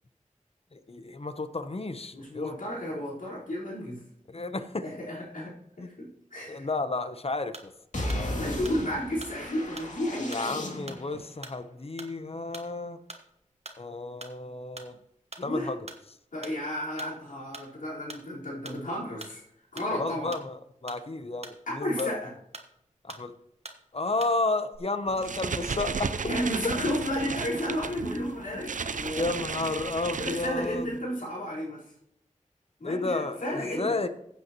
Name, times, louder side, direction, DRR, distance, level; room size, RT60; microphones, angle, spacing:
voice 1, 0.7-2.6 4.3-4.9 5.8-5.9 6.5-7.7 8.1-8.3 10.2-13.0 13.8-15.0 15.4-15.9 19.9-22.1 23.0-23.3 23.9-26.3 28.1-28.3 28.5-28.6 29.2-30.9 32.8-34.1, left 3 dB, 50° left, 10 dB, 0.9 m, -32 dB
voice 2, 2.1-4.0 4.8-5.5 6.0-6.7 8.2-10.6 15.4-15.7 16.3-19.4 19.7-20.3 21.7-22.3 26.2-29.3 30.2-31.9 32.8-34.0, equal, 90° left, -6 dB, 4.3 m, -32 dB
sound 1, 7.5-7.8 8.1-8.3 8.6-9.4 9.8-10.0 10.3-10.5 10.9-11.0 11.4-11.6 12.0-12.2 12.5-12.7 13.1-13.3 13.7-13.9 14.2-14.4 14.8-14.9 15.3-15.5 15.9-16.0 16.4-16.6 17.0-17.2 17.5-17.7 18.1-18.3 18.6-18.8 19.2-19.4 19.8-19.9 20.3-21.0 21.4-21.6 22.0-22.2 22.5-22.8 23.1-23.3 23.6-23.8 24.2-24.4 24.6-24.8, right 2 dB, 55° right, 1.3 m, -44 dB
sound 2, 7.9-11.2, left 1 dB, 65° left, 2.5 m, -35 dB
sound 3, 25.1-31.0, right 5 dB, 75° right, 0.5 m, -34 dB
15.5 x 8.4 x 3.0 m, 0.75 s
wide cardioid pair, 55°, 13 cm